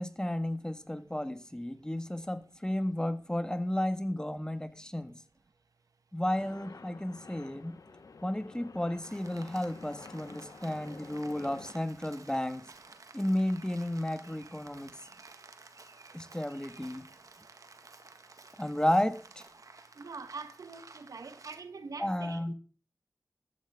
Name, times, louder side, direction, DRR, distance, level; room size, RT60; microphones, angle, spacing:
voice 1, 0.0-5.1 6.1-7.7 8.2-12.6 13.1-14.9 16.1-17.1 18.6-19.4 22.0-22.5, left 1 dB, 15° left, 1.6 m, -33 dB
sound 1, 6.2-11.7, left 4 dB, 80° left, 1.0 m, -50 dB
Rain, 9.0-21.6, right 3 dB, 70° right, 1.8 m, -54 dB
voice 2, 20.0-22.5, right 4 dB, 90° right, 1.2 m, -44 dB
14.5 x 13.0 x 3.6 m
cardioid pair, 45°, 6 cm